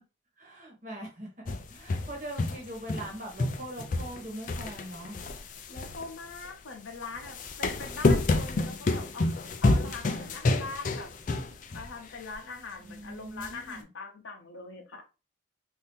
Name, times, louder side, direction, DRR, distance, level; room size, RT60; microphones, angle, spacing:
voice 1, 0.4-5.2 12.8-13.8, right 1 dB, 40° right, -1 dB, 1.2 m, -42 dB
sound 1, 1.5-3.1 3.4-6.5 7.2-11.9 12.2-12.3 13.4-13.5, left 2 dB, 40° left, 0.4 m, -29 dB
voice 2, 5.7-11.1 11.7-15.0, left 3 dB, 80° left, 3 dB, 0.7 m, -42 dB
2.7 x 2.7 x 3.4 m, 0.30 s
head